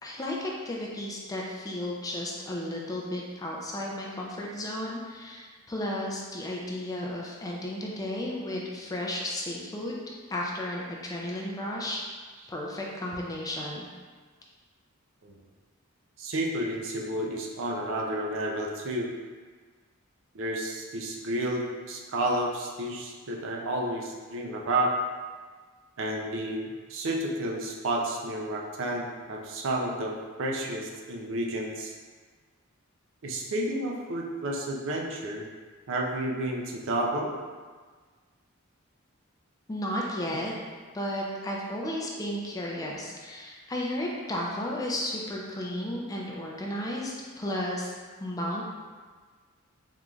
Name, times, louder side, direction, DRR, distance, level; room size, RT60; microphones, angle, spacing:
voice 1, 0.0-10.0 10.3-12.0 12.5-13.9 39.7-40.5 40.9-48.0 48.2-48.7, left 1 dB, 15° left, -2 dB, 0.4 m, -33 dB
voice 2, 16.2-19.1 20.3-24.9 26.0-30.1 30.4-31.9 33.2-35.5 35.9-37.3, right 1 dB, 65° right, 0 dB, 0.5 m, -31 dB
3.8 x 3.1 x 2.3 m, 1.5 s
head